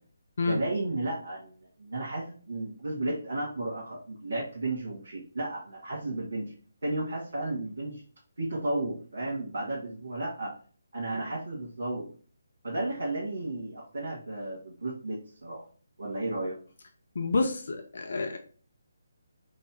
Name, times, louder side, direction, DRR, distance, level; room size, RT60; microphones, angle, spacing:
voice 1, 0.5-6.5 6.8-8.0 8.4-10.5 10.9-12.1 12.6-15.6 16.0-16.6, right 2 dB, 55° right, -5 dB, 1.5 m, -33 dB
voice 2, 17.2-18.4, left 3 dB, 50° left, 4 dB, 0.6 m, -28 dB
4.0 x 2.2 x 4.3 m, 0.42 s
figure-of-eight pair, 145°, 0 cm